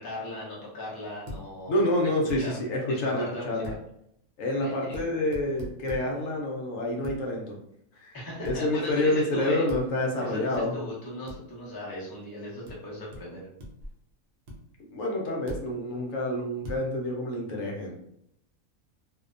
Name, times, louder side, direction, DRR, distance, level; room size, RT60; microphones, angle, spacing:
voice 1, 0.0-2.1 2.4-3.7 4.6-5.0 8.1-9.7 10.2-13.4, left 1 dB, 35° left, -5 dB, 0.3 m, -38 dB
sound 1, 1.3-1.4 2.3-2.4 3.6-3.8 4.9-5.1 5.3-6.0 7.0-7.2 8.5-8.6 9.7-9.9 10.5-10.6 11.3-11.4 12.7-12.8 13.1-13.2 13.6-13.9 14.5-14.6 15.5-15.7 16.6-16.8, equal, 60° right, 0.7 m, -39 dB
voice 2, 1.7-3.7 4.4-7.6 8.0-10.8 14.9-17.9, left 1 dB, 70° left, 0 dB, 0.9 m, -28 dB
2.6 x 2.1 x 2.5 m, 0.75 s
omnidirectional pair, 1.5 m